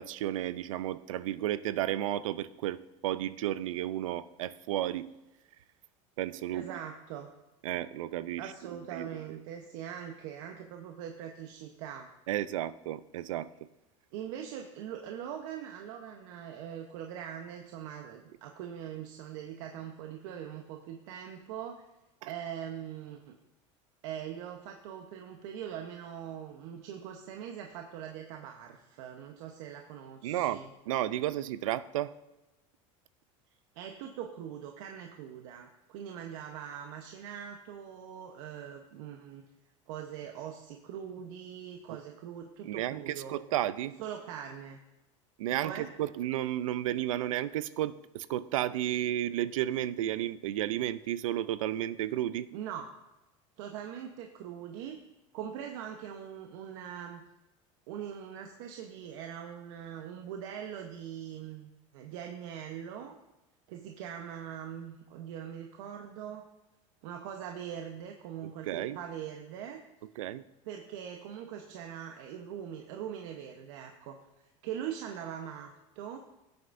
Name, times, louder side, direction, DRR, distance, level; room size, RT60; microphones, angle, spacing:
voice 1, 0.0-5.1 6.2-6.7 7.6-8.5 8.9-9.1 12.3-13.5 22.2-22.3 30.2-32.1 41.9-42.0 42.6-44.0 45.4-52.5 68.6-69.0 70.2-70.4, right 13 dB, 90° right, 16 dB, 0.5 m, -32 dB
voice 2, 6.5-7.3 8.4-12.1 14.1-21.9 22.3-23.4 24.0-30.7 33.7-39.5 39.9-43.4 44.0-44.8 45.6-45.9 52.5-52.9 53.6-55.0 55.3-57.2 57.9-63.2 63.7-66.5 67.0-69.8 70.6-76.2, right 9 dB, 70° right, 3 dB, 0.9 m, -42 dB
16.5 x 7.9 x 2.6 m, 0.98 s
supercardioid pair, 105°, 17 cm